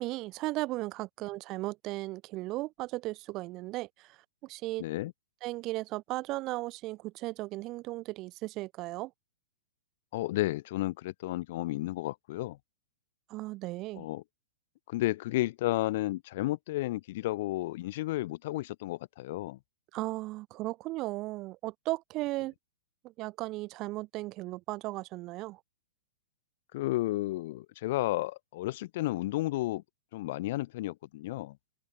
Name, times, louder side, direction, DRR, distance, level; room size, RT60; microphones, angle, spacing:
voice 1, 0.0-4.1 4.4-4.8 5.4-9.1 13.3-14.1 19.9-22.5 23.2-25.6, right 19 dB, 35° right, 4.4 m, -36 dB
voice 2, 4.8-5.1 10.1-12.6 14.0-14.2 14.9-19.6 26.7-29.8 30.1-31.5, left 17 dB, 55° left, 3.5 m, -32 dB
hypercardioid pair, 110°, 0 cm